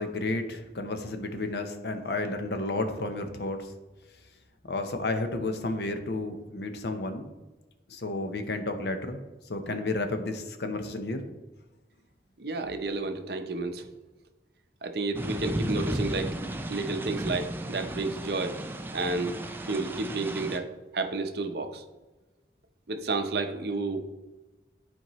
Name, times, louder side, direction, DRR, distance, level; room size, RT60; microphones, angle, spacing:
voice 1, 0.0-3.7 4.7-7.3 7.9-9.2 9.5-11.2, left 2 dB, 65° left, 7 dB, 0.8 m, -32 dB
voice 2, 12.4-13.9 14.8-16.4 16.7-18.6 18.9-19.4 19.7-20.7 20.9-21.8 22.9-24.0, right 3 dB, 60° right, 6 dB, 0.7 m, -31 dB
sound 1, 15.1-20.6, right 1 dB, 10° right, 0.3 m, -34 dB
10.0 x 4.4 x 3.0 m, 1.1 s
head